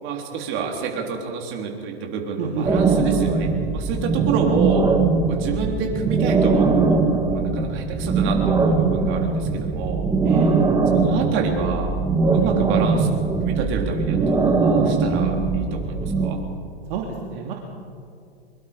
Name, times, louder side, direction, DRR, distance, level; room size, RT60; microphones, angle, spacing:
voice 1, 0.0-4.9 5.3-7.0 7.3-10.0 10.9-11.9 12.2-13.1 13.4-16.4, right 5 dB, 35° right, 1 dB, 3.8 m, -28 dB
voice 2, 2.4-2.7 10.2-10.5 16.9-17.5, right 6 dB, 55° right, 0 dB, 2.6 m, -29 dB
sound 1, 2.6-16.3, right 4 dB, 10° right, 2.1 m, -21 dB
23.5 x 22.5 x 5.3 m, 2.4 s
hypercardioid pair, 110°, 32 cm